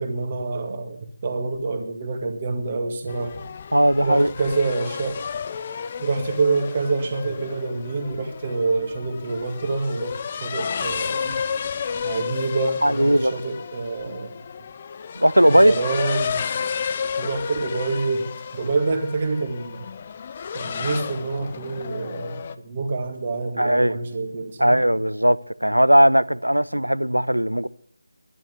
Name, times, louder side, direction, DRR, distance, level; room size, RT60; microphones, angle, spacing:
voice 1, 0.0-3.4 4.0-5.2 6.0-11.4 12.0-14.3 15.5-16.5 17.2-19.8 20.5-24.8, right 3 dB, 30° right, 2.0 m, -27 dB
sound 1, 3.1-22.5, left 6 dB, 25° left, 0.5 m, -32 dB
voice 2, 3.7-4.3 12.8-13.3 15.1-15.7 23.6-24.0 24.6-27.7, equal, 85° right, 0.7 m, -18 dB
11.0 x 11.0 x 8.2 m
figure-of-eight pair, 160°, 0 cm